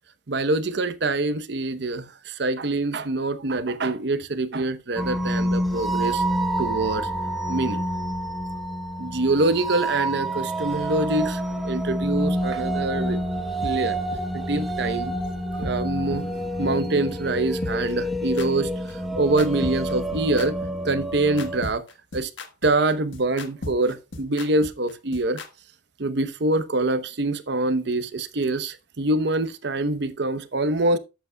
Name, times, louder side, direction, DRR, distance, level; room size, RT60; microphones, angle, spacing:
voice 1, 0.3-6.2 6.6-7.1 7.5-7.8 9.0-13.2 13.6-14.0 14.3-15.1 15.5-16.3 16.6-20.5 20.8-21.8 22.1-22.3 22.6-25.4 26.0-31.0, right 2 dB, 65° right, 0.9 m, -25 dB
sound 1, 5.0-21.6, right 1 dB, ahead, 0.9 m, -28 dB
sound 2, 13.6-13.7 14.1-14.2 14.6-14.7 15.1-15.2 15.6-15.7 16.1-16.2 16.6-16.7 17.1-17.2 17.6-25.5, left 2 dB, 75° left, 1.3 m, -35 dB
11.5 x 8.2 x 2.3 m
head